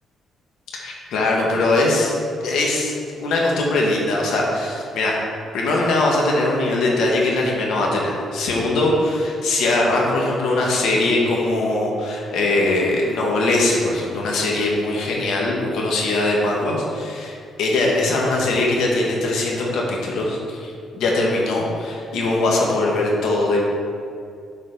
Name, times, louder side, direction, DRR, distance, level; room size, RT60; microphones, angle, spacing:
voice 1, 0.8-2.2 2.4-5.2 5.5-23.6, left 2 dB, 80° left, -2 dB, 1.5 m, -21 dB
8.5 x 4.1 x 5.3 m, 2.4 s
cardioid pair, 90°, 0 cm